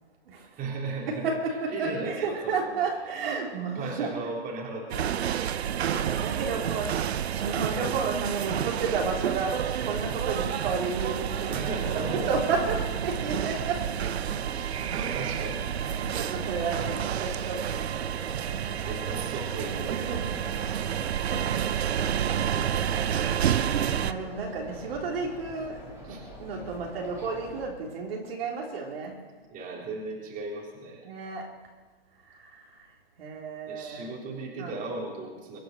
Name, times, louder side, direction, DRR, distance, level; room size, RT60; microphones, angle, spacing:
voice 1, 0.4-1.3 1.7-2.8 3.5-5.6 11.5-12.4 14.5-15.6 15.9-16.2 18.9-20.8 26.0-26.2 29.5-31.1 33.7-35.6, right 3 dB, 25° right, -2 dB, 3.6 m, -37 dB
voice 2, 1.1-4.1 5.8-13.9 15.0-15.3 16.0-18.8 19.9-20.2 21.0-21.5 23.9-25.8 26.1-29.3 31.0-31.5 32.3-32.9 33.2-34.2 34.6-34.7, right 4 dB, 65° right, -1 dB, 3.7 m, -33 dB
sound 1, 4.9-24.1, right 9 dB, 85° right, 0.8 m, -29 dB
sound 2, 11.0-27.7, right 1 dB, 10° right, 3.9 m, -44 dB
23.5 x 7.8 x 6.6 m, 1.3 s
hypercardioid pair, 135°, 31 cm